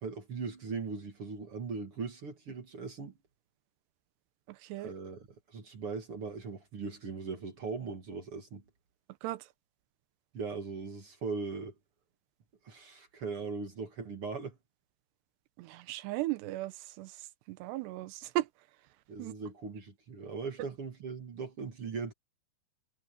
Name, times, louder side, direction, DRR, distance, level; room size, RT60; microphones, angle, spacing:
voice 1, 0.0-3.1 4.8-8.6 10.3-11.7 12.6-14.6 19.1-22.1, right 4 dB, 45° right, 1.9 m, -39 dB
voice 2, 4.5-4.9 9.2-9.4 15.6-17.1 17.5-18.5 19.2-19.3, right 17 dB, 80° right, 3.0 m, -36 dB
omnidirectional pair, 4.9 m